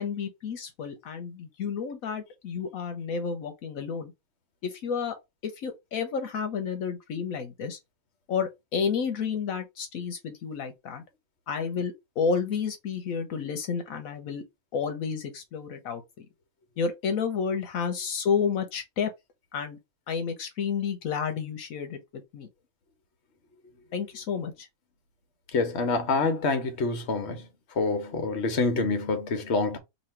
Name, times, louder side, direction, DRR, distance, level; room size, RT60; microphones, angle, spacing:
voice 1, 0.0-4.1 4.6-5.1 5.4-7.8 8.3-11.0 11.5-14.4 14.7-16.3 16.8-19.1 19.5-19.8 20.1-22.5 23.9-24.7, left 6 dB, 80° left, 1.2 m, -31 dB
voice 2, 25.5-27.5 27.8-29.8, left 3 dB, 55° left, 1.2 m, -26 dB
3.0 x 2.9 x 4.3 m
omnidirectional pair, 1.5 m